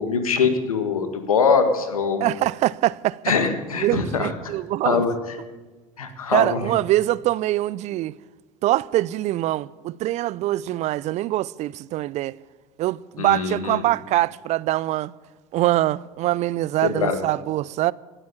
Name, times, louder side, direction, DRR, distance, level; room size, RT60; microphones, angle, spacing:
voice 1, 0.0-2.3 3.3-4.3 4.8-5.4 6.0-6.7 13.2-13.8 16.8-17.2, left 5 dB, 80° left, 1.7 m, -23 dB
voice 2, 2.2-3.2 3.8-5.0 6.3-8.2 8.6-12.4 12.8-15.1 15.5-17.9, right 15 dB, 40° right, 0.4 m, -23 dB
18.0 x 8.8 x 8.4 m
figure-of-eight pair, 70°, 18 cm